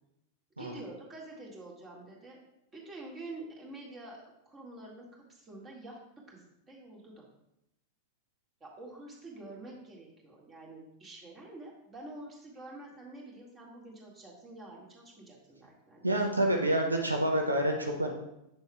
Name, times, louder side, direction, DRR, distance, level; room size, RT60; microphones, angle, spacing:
voice 1, 0.6-2.4 2.7-6.0 6.3-7.2 8.6-16.1, right 2 dB, 20° right, -2 dB, 2.0 m, -47 dB
voice 2, 16.0-18.1, right 1 dB, 80° right, 2 dB, 0.7 m, -28 dB
7.9 x 6.8 x 2.4 m, 0.85 s
figure-of-eight pair, 90°, 0 cm